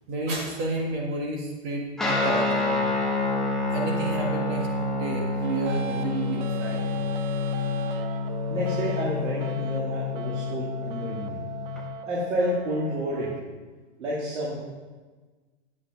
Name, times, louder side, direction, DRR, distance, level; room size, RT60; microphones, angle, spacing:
voice 1, 0.1-2.8 3.7-6.9, right 2 dB, 25° right, 0 dB, 1.6 m, -31 dB
Guitar, 2.0-11.8, left 3 dB, ahead, 0.6 m, -28 dB
sound 1, 5.4-13.4, right 6 dB, 45° right, 0.5 m, -36 dB
voice 2, 8.5-11.4 12.0-13.3 14.0-14.6, equal, 90° right, -5 dB, 2.5 m, -29 dB
8.8 x 7.2 x 5.2 m, 1.3 s
supercardioid pair, 160°, 36 cm